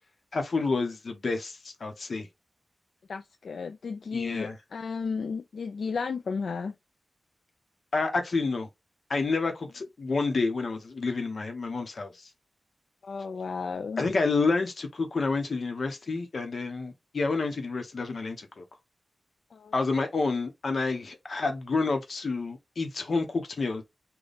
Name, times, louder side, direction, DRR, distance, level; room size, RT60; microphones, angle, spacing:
voice 1, 0.3-2.3 4.1-4.6 7.9-8.7 9.1-12.1 14.0-18.6 19.7-23.8, left 3 dB, 50° left, 0.8 m, -29 dB
voice 2, 3.1-6.7 13.0-14.0 19.5-19.7, left 5 dB, 65° left, 0.3 m, -33 dB
4.0 x 2.2 x 3.4 m
wide cardioid pair, 180°, 0 cm